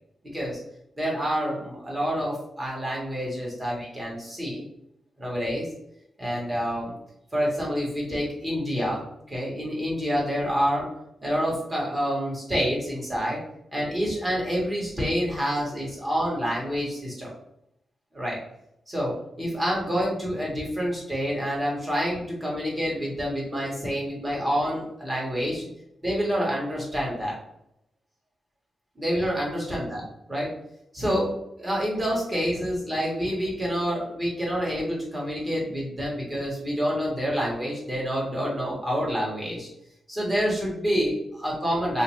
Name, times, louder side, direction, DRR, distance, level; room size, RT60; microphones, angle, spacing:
voice 1, 1.0-4.6 5.2-5.7 6.2-6.9 7.3-10.9 11.2-13.4 13.7-17.3 18.1-18.4 18.9-25.7 26.0-27.4 28.9-30.5 30.9-31.3 31.6-39.7 40.1-42.0, equal, 20° right, -4 dB, 1.5 m, -27 dB
3.2 x 2.9 x 3.1 m, 0.79 s
cardioid pair, 110°, 0 cm